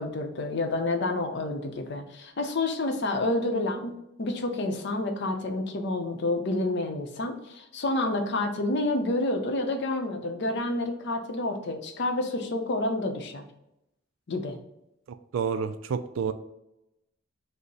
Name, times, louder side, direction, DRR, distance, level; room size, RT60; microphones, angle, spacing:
voice 1, 0.0-13.5 14.3-14.6, left 2 dB, 60° left, 6 dB, 0.6 m, -29 dB
voice 2, 15.3-16.3, right 6 dB, 75° right, 10 dB, 0.3 m, -29 dB
5.3 x 2.0 x 4.0 m, 0.87 s
head